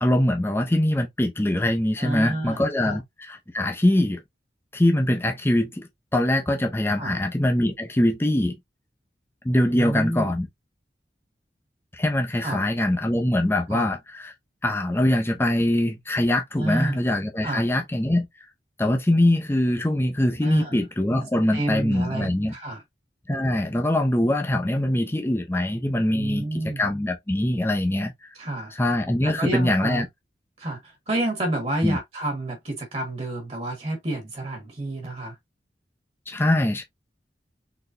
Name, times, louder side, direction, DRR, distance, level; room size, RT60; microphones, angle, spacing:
voice 1, 0.0-4.2 4.7-8.6 9.4-10.5 11.9-14.3 14.6-18.3 18.8-22.5 23.3-28.3 28.7-30.1 31.8-32.0 36.3-36.8, left 1 dB, 15° left, 0.6 m, -23 dB
voice 2, 2.0-3.0 7.0-7.2 9.7-10.3 12.4-12.7 13.7-13.9 16.6-17.0 17.4-17.7 20.4-20.8 21.5-22.8 26.1-26.8 28.3-28.8 29.2-30.0 30.6-35.4, right 1 dB, 35° right, 1.3 m, -29 dB
4.0 x 3.3 x 2.5 m
head